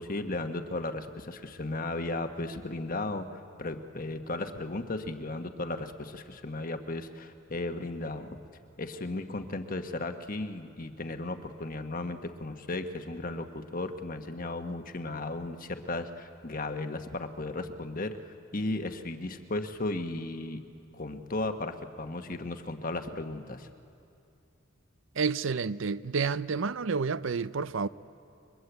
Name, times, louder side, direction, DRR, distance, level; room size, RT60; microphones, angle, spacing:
voice 1, 0.0-8.4 8.8-20.6 20.9-23.7, left 2 dB, 45° left, 1.3 m, -35 dB
voice 2, 25.2-27.9, right 5 dB, 70° right, 0.6 m, -29 dB
30.0 x 23.0 x 8.1 m
head